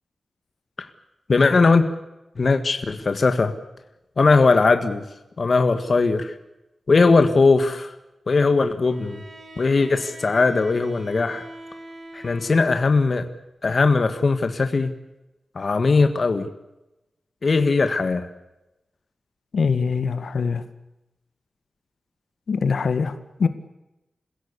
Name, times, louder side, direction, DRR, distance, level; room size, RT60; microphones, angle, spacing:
voice 1, 1.3-1.9 2.4-3.5 4.2-5.0 5.4-6.3 6.9-7.9 8.3-9.2 9.6-11.5 12.1-13.3 13.6-14.9 15.5-16.5 17.4-18.3, left 3 dB, 45° left, 8 dB, 1.7 m, -19 dB
Bowed string instrument, 8.8-13.1, right 1 dB, 40° right, 4.1 m, -43 dB
voice 2, 19.5-20.6 22.5-23.5, left 5 dB, 75° left, 10 dB, 1.9 m, -23 dB
28.0 x 16.5 x 8.3 m, 0.95 s
wide cardioid pair, 150°, 0 cm